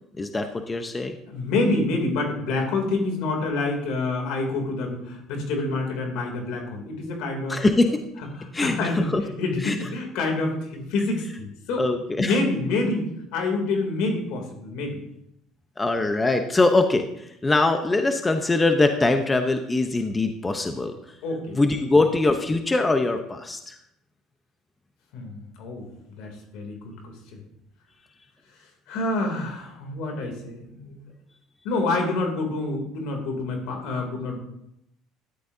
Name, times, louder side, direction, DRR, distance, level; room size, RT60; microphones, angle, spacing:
voice 1, 0.2-1.1 7.5-8.0 8.5-9.2 9.6-9.7 11.8-12.3 15.8-21.0 21.6-23.7, left 2 dB, 20° left, 6 dB, 0.9 m, -22 dB
voice 2, 1.3-7.6 8.2-11.9 12.2-15.0 21.2-21.6 25.1-25.8 26.2-27.4 28.6-31.1 31.6-34.4, left 2 dB, 75° left, 2 dB, 3.0 m, -27 dB
13.5 x 11.5 x 2.8 m, 0.79 s
supercardioid pair, 95°, 0 cm